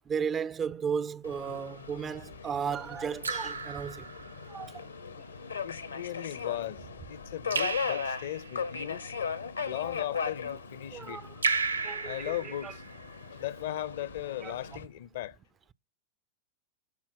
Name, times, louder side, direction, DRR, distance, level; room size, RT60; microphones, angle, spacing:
voice 1, 0.1-4.1 4.5-4.7 10.9-11.3 11.8-12.7 14.4-14.5, right 7 dB, 20° right, 0.4 m, -34 dB
Subway metro underground, 1.2-14.8, left 6 dB, 75° left, 1.0 m, -38 dB
Raindrop / Drip, 1.4-1.9 3.2-4.6 7.5-8.6 11.4-13.1, right 4 dB, 75° right, 0.6 m, -34 dB
voice 2, 5.6-9.1 9.6-11.2 12.0-12.8 13.3-15.4, left 13 dB, 55° left, 0.7 m, -37 dB
11.0 x 4.1 x 5.9 m
figure-of-eight pair, 90°, 0 cm